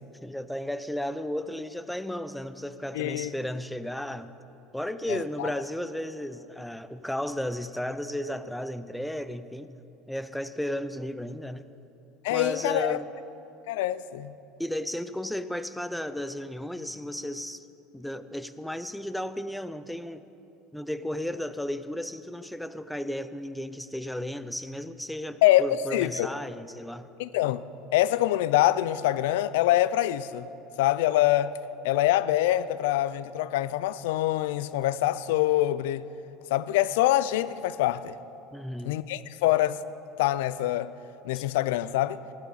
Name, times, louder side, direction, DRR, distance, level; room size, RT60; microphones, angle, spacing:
voice 1, 0.2-4.3 4.7-9.7 10.1-11.7 12.3-13.1 14.6-17.7 17.9-20.2 20.7-27.1 38.5-39.0 41.3-41.4, left 1 dB, 5° left, 0.4 m, -34 dB
voice 2, 2.9-3.3 5.1-5.5 12.2-13.0 13.7-14.3 25.4-26.3 27.2-27.6 27.9-30.5 30.8-31.6 31.8-36.1 36.5-38.1 38.8-39.8 40.2-40.9 41.2-42.2, left 14 dB, 85° left, 0.3 m, -25 dB
15.0 x 11.5 x 4.0 m
supercardioid pair, 110°, 0 cm